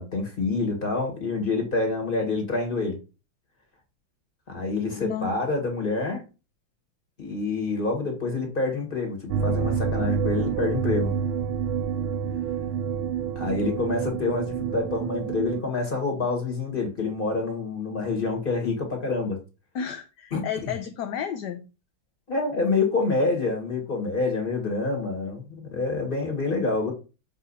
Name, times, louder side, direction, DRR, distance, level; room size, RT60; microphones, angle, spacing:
voice 1, 0.0-3.0 4.5-6.2 7.2-11.1 13.4-19.4 20.3-20.7 22.3-26.9, left 3 dB, 25° left, 2.5 m, -27 dB
voice 2, 4.9-5.3 19.7-21.7, left 8 dB, 65° left, 1.2 m, -32 dB
sound 1, 9.3-15.6, right 7 dB, 85° right, 1.5 m, -28 dB
7.3 x 3.7 x 5.7 m
omnidirectional pair, 2.3 m